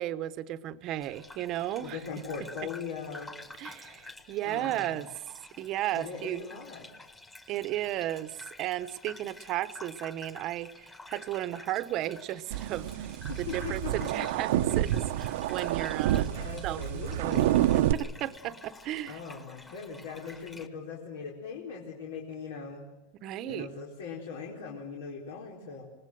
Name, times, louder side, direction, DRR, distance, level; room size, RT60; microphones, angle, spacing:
voice 1, 0.0-2.0 3.6-5.1 5.6-6.4 7.5-8.3 8.6-16.3 16.6-17.4 17.9-19.2 23.2-23.7, right 13 dB, 40° right, 14 dB, 1.0 m, -34 dB
Gurgling / Bathtub (filling or washing), 1.0-20.7, left 2 dB, 10° left, 1.5 m, -50 dB
voice 2, 1.8-3.3 4.4-5.0 5.9-6.9 13.3-14.5 15.1-15.2 15.7-17.6 19.0-22.8 23.5-25.8, left 5 dB, 90° left, -2 dB, 4.2 m, -40 dB
sound 1, 12.5-17.9, right 13 dB, 70° right, 0.9 m, -28 dB
25.5 x 19.5 x 7.8 m, 1.0 s
supercardioid pair, 150°, 0 cm